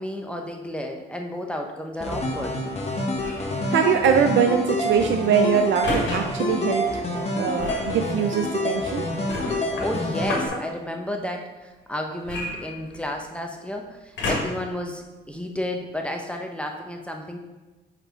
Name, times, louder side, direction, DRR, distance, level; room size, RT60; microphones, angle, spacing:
voice 1, 0.0-2.6 9.8-17.4, left 1 dB, 5° left, 2 dB, 0.8 m, -32 dB
sound 1, 2.0-10.5, left 1 dB, 30° left, 1.3 m, -27 dB
sound 2, 3.1-3.5 5.8-6.2 7.6-7.9 9.3-10.6 12.2-13.2 14.2-14.7 15.4-15.5, left 2 dB, 70° left, 1.6 m, -30 dB
voice 2, 3.3-7.1 7.4-9.1, right 7 dB, 70° right, 5 dB, 0.5 m, -22 dB
4.8 x 4.5 x 5.1 m, 1.1 s
cardioid pair, 90°, 20 cm